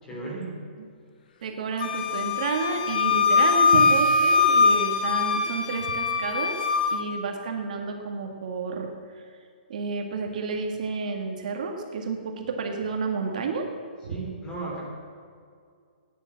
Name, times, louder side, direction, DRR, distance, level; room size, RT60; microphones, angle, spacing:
voice 1, 0.0-0.5 14.1-14.8, right 3 dB, 10° left, -4 dB, 3.4 m, -35 dB
voice 2, 1.4-6.6 6.9-8.9 9.7-13.7 14.0-14.2, right 4 dB, 50° right, 3 dB, 1.7 m, -30 dB
Wind instrument woodwind instrument, 1.8-7.0, left 4 dB, 65° left, 1.8 m, -22 dB
14.5 x 9.8 x 7.5 m, 2.2 s
hypercardioid pair, 170°, 5 cm